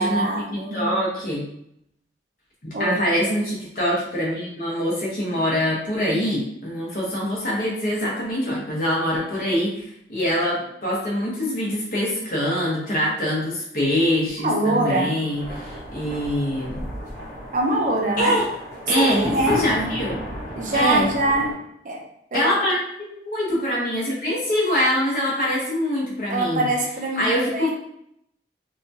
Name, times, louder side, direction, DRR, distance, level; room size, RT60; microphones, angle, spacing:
voice 1, 0.0-0.9 2.7-3.0 14.4-15.2 17.5-18.4 19.0-19.6 20.5-22.6 26.3-27.7, right 2 dB, 45° right, 0 dB, 0.5 m, -24 dB
voice 2, 0.7-1.4 2.6-16.8 18.2-18.5 18.9-19.2 19.5-20.2 20.7-21.1 22.3-26.7 27.2-27.7, equal, 50° left, -4 dB, 1.0 m, -24 dB
sound 1, 15.3-21.5, equal, 15° left, 1.2 m, -34 dB
2.8 x 2.3 x 2.7 m, 0.75 s
head